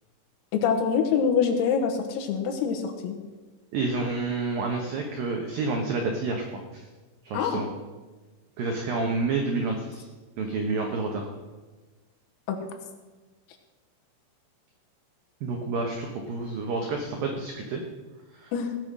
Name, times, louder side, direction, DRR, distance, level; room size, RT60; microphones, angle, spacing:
voice 1, 0.5-3.2 7.3-7.6 12.5-12.6 18.5-18.7, left 6 dB, 80° left, 4 dB, 4.0 m, -25 dB
voice 2, 3.7-6.9 7.2-7.7 8.6-10.0 10.4-11.3 15.4-17.8 18.3-18.5, right 3 dB, 85° right, 2 dB, 2.0 m, -29 dB
18.0 x 7.1 x 6.2 m, 1.3 s
omnidirectional pair, 5.9 m